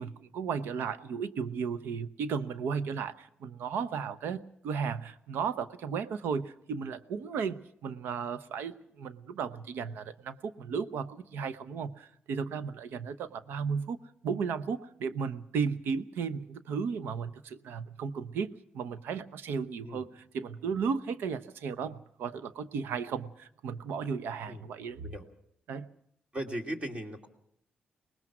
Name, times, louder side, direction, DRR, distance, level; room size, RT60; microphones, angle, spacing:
voice 1, 0.0-14.0 14.2-25.1 25.7-25.9, right 6 dB, 90° right, 14 dB, 0.9 m, -35 dB
voice 2, 26.3-27.3, right 1 dB, 35° right, 5 dB, 2.8 m, -37 dB
24.0 x 19.5 x 6.1 m, 0.72 s
cardioid pair, 90°, 4 cm